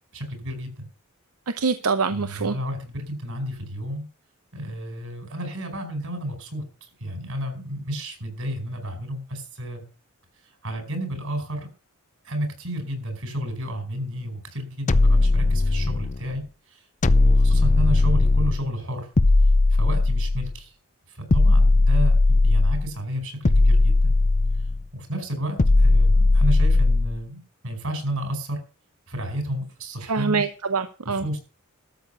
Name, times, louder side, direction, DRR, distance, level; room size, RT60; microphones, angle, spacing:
voice 1, 0.1-0.9 2.1-4.1 4.5-9.8 10.4-11.7 12.2-19.1 19.7-20.7 21.1-24.1 24.6-28.6 29.1-30.4 31.0-31.4, right 1 dB, 65° right, 6 dB, 5.0 m, -32 dB
voice 2, 1.6-2.6 30.1-31.2, right 4 dB, 90° right, 10 dB, 0.9 m, -24 dB
sound 1, 14.9-16.2 17.0-18.7 19.2-20.6 21.3-22.9 23.4-24.8 25.6-27.2, left 2 dB, 35° left, 0.5 m, -18 dB
13.0 x 6.7 x 7.0 m, 0.37 s
head